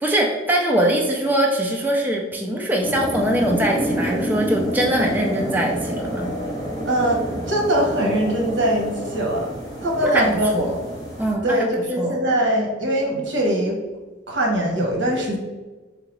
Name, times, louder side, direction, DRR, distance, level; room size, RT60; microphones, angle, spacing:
voice 1, 0.0-6.3 10.0-10.7 11.2-11.7 12.0-12.2, right 1 dB, 10° right, 0 dB, 0.4 m, -22 dB
sound 1, 2.8-11.3, equal, 20° left, 1.2 m, -28 dB
voice 2, 6.8-9.5 9.8-10.6 11.4-13.8 14.3-15.4, right 1 dB, 75° right, 0 dB, 1.0 m, -22 dB
3.8 x 3.4 x 3.1 m, 1.3 s
head